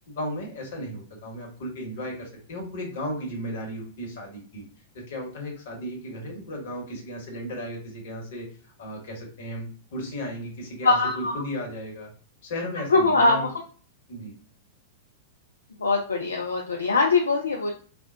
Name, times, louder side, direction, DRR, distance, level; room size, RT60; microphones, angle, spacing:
voice 1, 0.1-4.6 4.9-12.1 12.4-13.5 14.1-14.3, equal, 55° left, 0 dB, 1.1 m, -35 dB
voice 2, 10.8-11.4 12.9-13.5 15.8-17.7, left 3 dB, 75° left, 1 dB, 0.4 m, -22 dB
3.3 x 2.1 x 2.6 m, 0.41 s
figure-of-eight pair, 95°, 0 cm